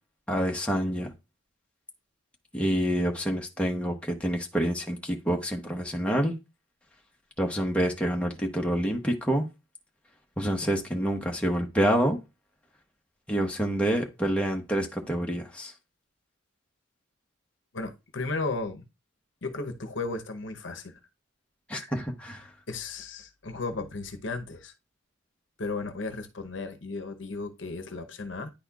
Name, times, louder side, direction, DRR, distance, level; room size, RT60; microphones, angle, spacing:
voice 1, 0.3-1.1 2.5-6.3 7.4-9.5 10.4-12.2 13.3-15.7 21.7-22.5, equal, 5° left, 0.9 m, -27 dB
voice 2, 17.7-18.8 19.4-21.0 22.7-24.7 25.6-28.5, left 3 dB, 60° left, 0.8 m, -34 dB
10.0 x 4.2 x 2.3 m
head